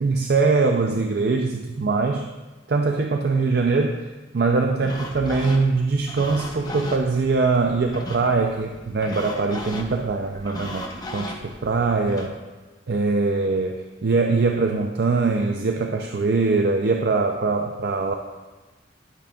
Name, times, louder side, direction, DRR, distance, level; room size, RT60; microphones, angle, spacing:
voice 1, 0.0-2.3 2.7-4.0 4.3-12.4 12.9-18.1, right 3 dB, 60° right, 3 dB, 0.5 m, -22 dB
sound 1, 4.8-12.3, left 1 dB, 20° left, 0.8 m, -37 dB
11.5 x 8.6 x 2.4 m, 1.2 s
head